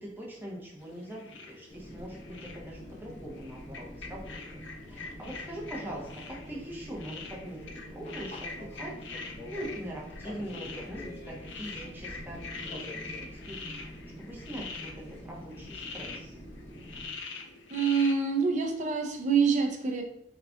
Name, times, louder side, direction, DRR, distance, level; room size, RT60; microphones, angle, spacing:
voice 1, 0.0-4.6 4.9-8.9 9.2-13.6 14.2-16.3, right 1 dB, 10° right, -3 dB, 0.8 m, -42 dB
sound 1, 0.8-18.5, left 4 dB, 80° left, 0.5 m, -44 dB
Fixed-wing aircraft airplane, 1.7-17.1, equal, 35° left, 1.0 m, -45 dB
voice 2, 17.7-20.0, right 5 dB, 40° right, 4 dB, 0.5 m, -26 dB
3.7 x 2.4 x 3.4 m, 0.74 s
head